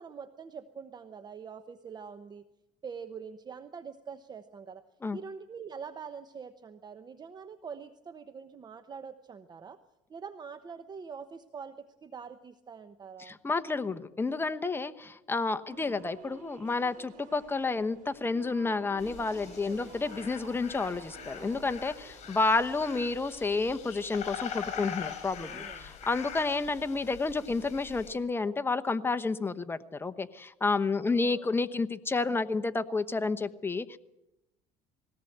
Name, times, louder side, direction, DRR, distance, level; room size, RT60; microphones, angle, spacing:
voice 1, 0.0-2.4 2.8-4.8 5.1-9.8 10.1-13.4 15.7-15.9 19.6-19.9 25.3-25.9 31.0-31.5, right 6 dB, 30° right, 10 dB, 0.9 m, -44 dB
voice 2, 13.2-34.0, left 3 dB, 15° left, 10 dB, 1.0 m, -30 dB
sound 1, 15.7-23.2, right 6 dB, 60° right, 5.4 m, -52 dB
sound 2, 19.0-28.1, left 8 dB, 50° left, 6.3 m, -43 dB
20.5 x 17.5 x 8.0 m, 0.89 s
cardioid pair, 115°, 15 cm